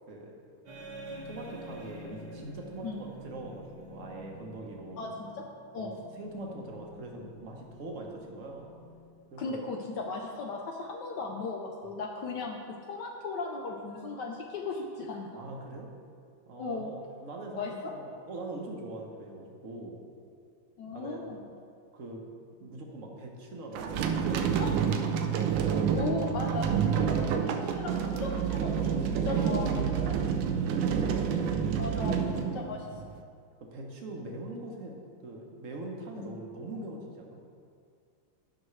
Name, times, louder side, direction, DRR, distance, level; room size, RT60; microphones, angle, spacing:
sound 1, 0.7-9.6, equal, 70° right, 2.1 m, -48 dB
voice 1, 1.2-5.1 5.7-8.7 9.3-9.6 15.3-15.9 16.5-20.0 20.9-21.2 21.9-22.2 22.6-25.2 30.3-30.7 31.4-32.3 33.6-35.0 35.2-37.4, right 2 dB, 50° right, 0 dB, 1.1 m, -42 dB
voice 2, 5.0-5.5 5.7-5.9 9.4-12.6 12.9-15.3 16.6-16.9 17.6-17.7 20.8-21.5 24.6-24.7 25.9-30.4 31.8-32.2 32.5-32.9 36.2-36.3, left 3 dB, 70° left, 1 dB, 1.2 m, -37 dB
sound 2, 23.7-33.2, right 7 dB, 90° right, 1.4 m, -28 dB
11.5 x 6.1 x 3.2 m, 2.3 s
omnidirectional pair, 2.1 m